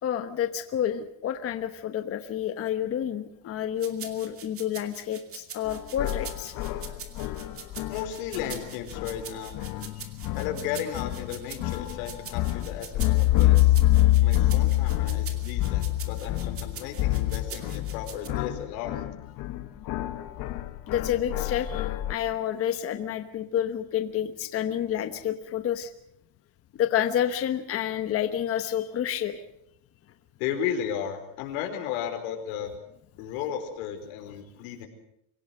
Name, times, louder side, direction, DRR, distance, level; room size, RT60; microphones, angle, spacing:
voice 1, 0.0-6.5 20.9-25.9 26.7-29.4, left 10 dB, 35° left, 8 dB, 1.1 m, -29 dB
sound 1, 3.8-18.3, right 7 dB, 30° right, 2.5 m, -43 dB
sound 2, 5.7-9.3 9.5-22.1, left 15 dB, 50° left, 1.3 m, -26 dB
voice 2, 7.9-9.5 10.3-13.8 14.2-19.0 30.4-32.7 33.2-34.9, left 9 dB, 85° left, 6 dB, 4.7 m, -34 dB
25.0 x 17.5 x 7.7 m, 0.74 s
cardioid pair, 155°, 42 cm